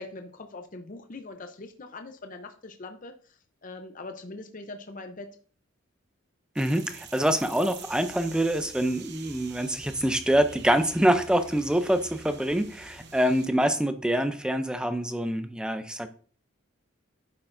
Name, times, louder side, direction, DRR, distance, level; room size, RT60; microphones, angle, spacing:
voice 1, 0.0-5.3, left 2 dB, 40° left, 6 dB, 0.6 m, -42 dB
voice 2, 6.6-16.1, right 1 dB, 5° right, 9 dB, 0.4 m, -25 dB
sound 1, 6.6-13.5, right 6 dB, 55° right, 0.9 m, -46 dB
9.7 x 6.7 x 2.6 m, 0.43 s
head